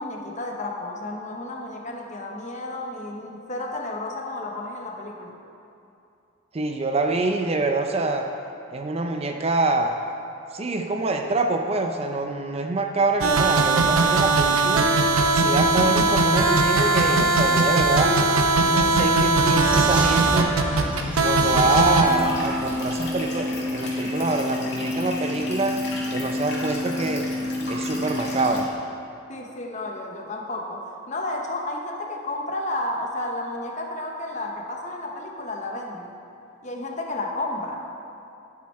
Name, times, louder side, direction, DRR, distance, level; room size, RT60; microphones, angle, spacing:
voice 1, 0.0-5.4 29.3-36.1 36.6-37.9, left 2 dB, 35° left, 2 dB, 0.9 m, -32 dB
voice 2, 6.5-8.3 8.7-9.9 10.5-14.9 15.3-18.2 18.6-20.5 21.2-25.8 26.1-27.3 27.6-28.7, right 3 dB, 30° right, 4 dB, 0.5 m, -25 dB
sound 1, 13.2-22.0, right 3 dB, 90° right, 0.8 m, -19 dB
Vehicle, 19.7-23.6, equal, 5° right, 0.9 m, -33 dB
fish-tank-fltr-edit, 22.0-28.6, left 2 dB, 55° left, 2.0 m, -29 dB
11.0 x 7.5 x 4.3 m, 2.7 s
head